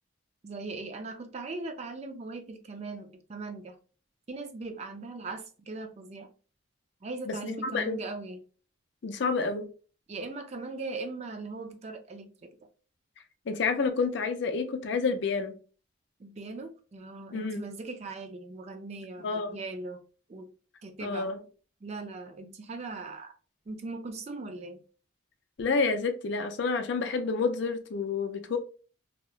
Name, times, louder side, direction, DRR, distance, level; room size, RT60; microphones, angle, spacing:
voice 1, 0.4-3.8 4.3-6.3 7.0-8.4 10.1-12.5 16.2-20.0 20.3-20.5 20.8-21.3 21.8-23.3 23.7-24.8, right 3 dB, 30° right, 0.3 m, -39 dB
voice 2, 7.3-8.0 9.0-9.6 13.5-15.5 17.3-17.6 19.2-19.6 21.0-21.4 25.6-28.6, left 4 dB, 60° left, 0.4 m, -29 dB
2.8 x 2.1 x 2.3 m
head